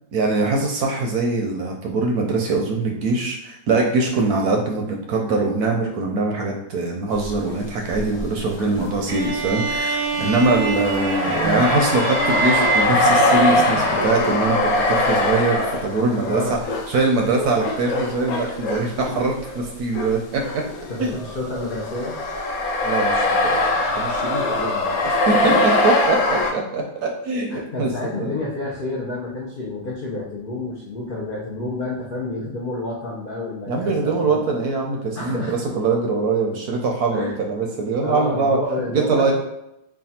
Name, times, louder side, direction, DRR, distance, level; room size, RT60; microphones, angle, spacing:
voice 1, 0.1-14.6 14.9-16.6 16.9-20.6 21.0-21.1 22.8-27.9 28.2-28.4 33.7-38.6 38.9-39.3, right 3 dB, 70° right, 1 dB, 0.9 m, -23 dB
sound 1, 7.2-7.5 7.9-20.1 20.4-26.5, left 2 dB, 70° left, 0.9 m, -22 dB
sound 2, 9.1-14.3, right 4 dB, 85° right, 1.4 m, -25 dB
voice 2, 16.3-16.6 20.9-22.2 24.5-24.7 25.4-25.6 27.5-34.4 35.1-35.6 37.1-37.4 38.0-39.3, left 2 dB, 90° left, -5 dB, 0.4 m, -29 dB
3.3 x 2.3 x 4.1 m, 0.81 s
omnidirectional pair, 2.0 m